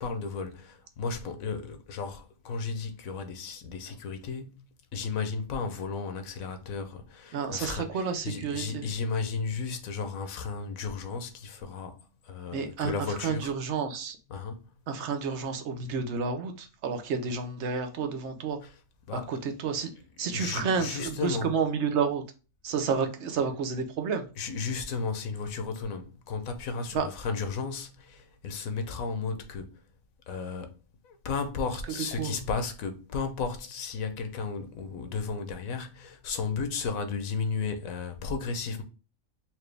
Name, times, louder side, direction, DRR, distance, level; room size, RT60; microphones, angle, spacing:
voice 1, 0.0-4.7 4.9-13.5 14.3-14.7 18.6-18.8 19.1-19.4 20.2-21.5 24.4-29.9 30.3-30.8 31.0-38.8, left 4 dB, 90° left, 1.1 m, -34 dB
voice 2, 7.3-8.9 12.5-12.9 13.2-14.2 14.9-18.6 19.1-19.9 20.2-22.2 22.6-24.2 26.9-27.1 32.2-32.4, right 5 dB, 60° right, 0.9 m, -30 dB
4.4 x 2.6 x 3.2 m
omnidirectional pair, 1.4 m